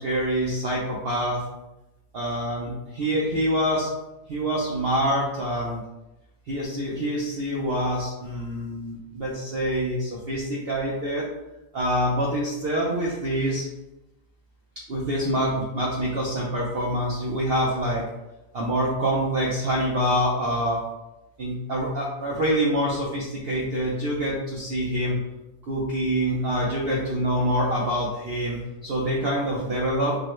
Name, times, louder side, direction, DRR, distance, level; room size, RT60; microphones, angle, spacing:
voice 1, 0.0-1.4 2.1-3.9 4.3-5.8 6.5-11.3 11.7-13.7 14.9-18.0 18.5-20.8 21.4-25.2 25.7-30.2, equal, 80° right, -4 dB, 0.5 m, -26 dB
3.7 x 2.1 x 3.0 m, 0.98 s
omnidirectional pair, 1.7 m